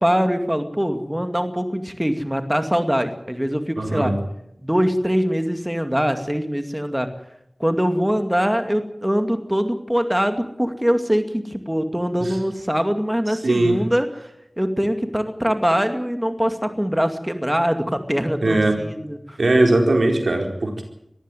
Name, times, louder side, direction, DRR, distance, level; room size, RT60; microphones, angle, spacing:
voice 1, 0.0-4.1 4.6-7.1 7.6-14.1 14.6-19.4, equal, 10° right, 7 dB, 2.3 m, -23 dB
voice 2, 3.8-4.1 13.4-13.8 18.4-18.8 19.4-20.8, right 2 dB, 85° right, 3 dB, 4.3 m, -19 dB
22.5 x 15.0 x 9.2 m, 0.79 s
wide cardioid pair, 45°, 0 cm